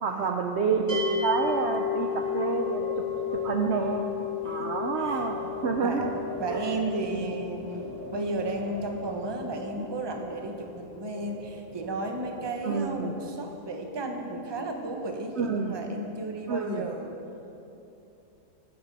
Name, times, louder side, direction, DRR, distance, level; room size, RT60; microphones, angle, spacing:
voice 1, 0.0-3.0 3.4-4.1 4.4-6.1 6.5-6.7 7.1-7.4 12.6-13.1 15.4-15.7 16.5-16.8, right 5 dB, 60° right, 3 dB, 0.8 m, -29 dB
Wind, 0.8-13.4, right 2 dB, 75° right, 1.3 m, -44 dB
sound 1, 0.9-12.0, left 8 dB, 60° left, 3.0 m, -34 dB
voice 2, 5.0-5.3 5.8-6.1 6.4-17.1, right 2 dB, 20° right, 3 dB, 0.8 m, -34 dB
14.5 x 9.4 x 4.1 m, 2.8 s
omnidirectional pair, 1.5 m